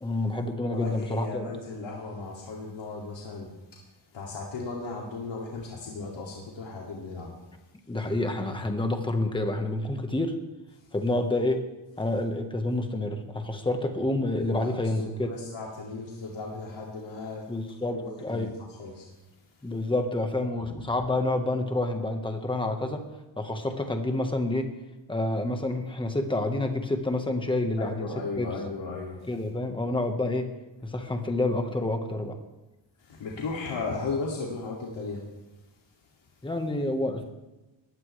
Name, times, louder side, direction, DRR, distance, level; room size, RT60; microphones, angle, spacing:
voice 1, 0.0-1.5 7.9-10.4 10.9-11.7 12.0-15.3 17.5-18.5 19.6-23.1 23.4-24.7 25.1-28.1 28.4-28.5 29.3-30.6 30.8-32.4 36.4-37.2, left 2 dB, 10° left, 5 dB, 1.4 m, -28 dB
voice 2, 0.7-3.5 4.1-7.4 14.3-14.7 15.0-17.5 17.9-19.1 27.8-29.2 33.0-35.2, left 3 dB, 75° left, -3 dB, 2.7 m, -36 dB
21.0 x 16.0 x 3.4 m, 1.1 s
wide cardioid pair, 180°, 45 cm